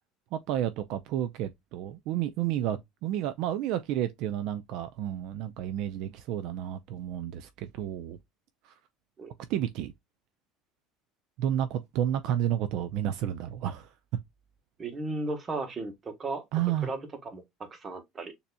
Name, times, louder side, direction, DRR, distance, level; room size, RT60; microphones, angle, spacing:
voice 1, 0.3-8.2 8.6-8.7 9.5-9.9 11.4-13.9 16.5-16.9, right 11 dB, 65° right, 0.5 m, -31 dB
voice 2, 14.8-16.4 16.8-18.3, right 2 dB, 25° right, 1.3 m, -35 dB
6.7 x 2.8 x 2.2 m
cardioid pair, 140°, 0 cm